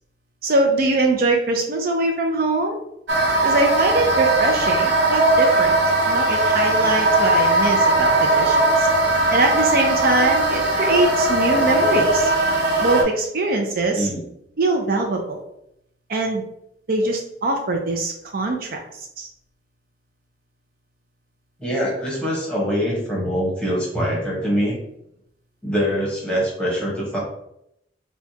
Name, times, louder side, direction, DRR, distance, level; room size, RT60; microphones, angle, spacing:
voice 1, 0.4-2.8 3.4-5.7 6.1-8.9 9.3-12.3 12.8-14.1 14.6-15.4 16.1-16.4 16.9-18.8 19.2-19.3, right 2 dB, 55° right, 3 dB, 0.4 m, -22 dB
sound 1, 3.1-13.0, right 2 dB, 80° right, 0.8 m, -19 dB
voice 2, 21.6-24.8 25.6-27.2, equal, 5° left, -5 dB, 1.1 m, -23 dB
4.4 x 2.3 x 2.8 m, 0.78 s
head